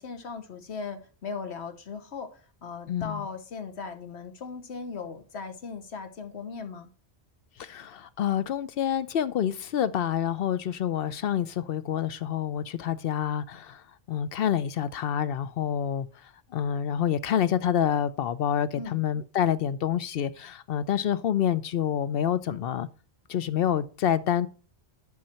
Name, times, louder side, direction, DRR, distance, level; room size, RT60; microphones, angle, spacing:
voice 1, 0.0-6.9 18.7-19.0, left 5 dB, 85° left, 1.4 m, -38 dB
voice 2, 2.9-3.3 7.6-13.8 14.1-16.1 16.5-22.9 23.3-24.5, left 9 dB, 65° left, 0.8 m, -27 dB
10.5 x 5.6 x 4.3 m
omnidirectional pair, 1.1 m